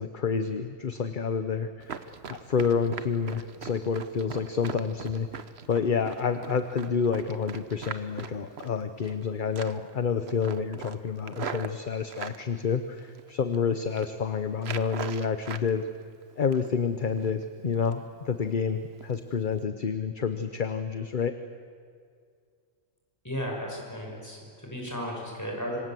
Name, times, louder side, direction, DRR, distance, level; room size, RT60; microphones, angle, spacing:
voice 1, 0.0-15.9 16.4-21.4, left 6 dB, 45° left, 9 dB, 1.0 m, -29 dB
Run, 1.8-9.2 9.5-9.9 10.3-12.4 13.0-13.5 13.8-14.1 14.6-15.7 16.0-16.8 17.2-17.3 17.7-18.1 18.4-18.5 19.0-19.1 19.5-19.6, right 6 dB, 55° right, 1.2 m, -40 dB
voice 2, 23.2-25.8, equal, 15° left, -1 dB, 6.3 m, -35 dB
26.0 x 26.0 x 7.7 m, 2.2 s
omnidirectional pair, 1.3 m